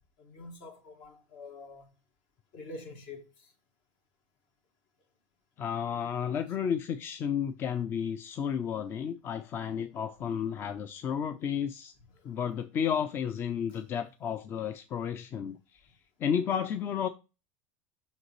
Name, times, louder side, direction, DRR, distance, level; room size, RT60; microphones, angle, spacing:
voice 1, 0.2-1.9 2.5-3.5 12.2-12.3 13.7-13.8, left 2 dB, 65° left, 2.0 m, -47 dB
voice 2, 5.6-11.9 12.2-15.9 16.2-17.1, left 8 dB, 35° left, 0.4 m, -32 dB
5.9 x 5.2 x 3.1 m
supercardioid pair, 125°, 7 cm